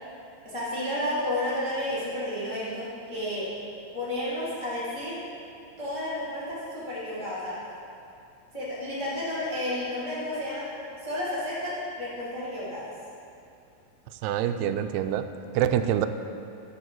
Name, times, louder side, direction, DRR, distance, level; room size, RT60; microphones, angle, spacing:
voice 1, 0.4-3.6 3.9-5.2 5.8-7.6 8.5-10.7 11.0-12.9, left 1 dB, 10° left, -9 dB, 1.6 m, -31 dB
voice 2, 14.2-16.1, right 10 dB, 85° right, 9 dB, 2.6 m, -26 dB
15.0 x 7.0 x 4.6 m, 2.6 s
omnidirectional pair, 4.5 m